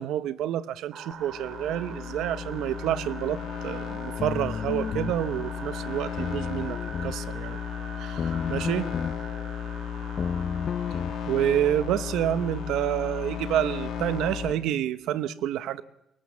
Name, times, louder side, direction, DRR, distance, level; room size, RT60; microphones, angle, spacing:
voice 1, 0.0-7.6 8.0-8.9 11.3-15.8, right 11 dB, 90° right, 16 dB, 0.9 m, -28 dB
sound 1, 0.9-14.4, right 6 dB, 65° right, 3.2 m, -44 dB
sound 2, 1.1-14.5, left 8 dB, 80° left, 2.0 m, -35 dB
sound 3, 4.2-5.2 6.2-7.2 8.2-9.2 10.2-11.1, left 7 dB, 55° left, 0.8 m, -31 dB
23.0 x 20.0 x 7.3 m, 0.84 s
cardioid pair, 90°, 0 cm